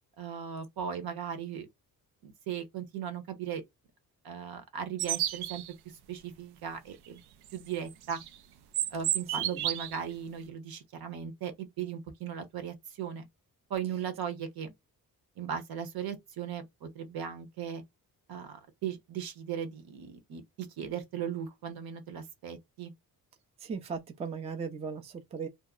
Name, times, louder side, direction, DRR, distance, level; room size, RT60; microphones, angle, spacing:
voice 1, 0.2-1.7 2.2-3.6 4.2-5.6 6.1-7.2 7.5-8.2 8.9-13.3 13.7-14.7 15.4-17.8 18.3-22.9, right 8 dB, 70° right, 1.0 m, -37 dB
sound 1, 5.0-5.7 7.9-8.3 8.7-10.0, right 11 dB, 90° right, 0.5 m, -31 dB
voice 2, 23.6-25.5, right 5 dB, 20° right, 0.4 m, -37 dB
2.8 x 2.1 x 3.6 m
wide cardioid pair, 175°, 38 cm